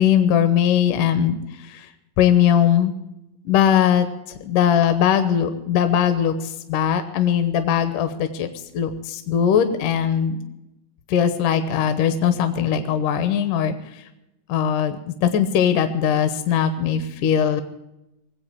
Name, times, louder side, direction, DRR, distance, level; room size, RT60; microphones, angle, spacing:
voice 1, 0.0-1.9 2.2-2.9 3.5-4.1 4.4-8.5 8.7-10.4 11.1-13.7 14.5-17.6, left 9 dB, 70° left, 9 dB, 2.4 m, -20 dB
20.5 x 8.1 x 8.3 m, 0.90 s
omnidirectional pair, 4.0 m